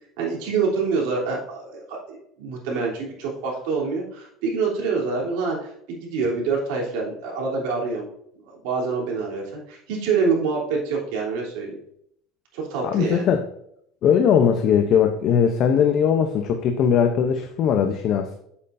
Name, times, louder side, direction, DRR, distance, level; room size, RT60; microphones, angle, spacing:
voice 1, 0.2-8.1 8.6-11.8 12.5-13.2, right 4 dB, 80° right, -2 dB, 3.2 m, -26 dB
voice 2, 12.8-13.4 14.0-18.4, left 7 dB, 45° left, 5 dB, 0.7 m, -19 dB
8.1 x 7.6 x 2.6 m, 0.71 s
cardioid pair, 160°, 0 cm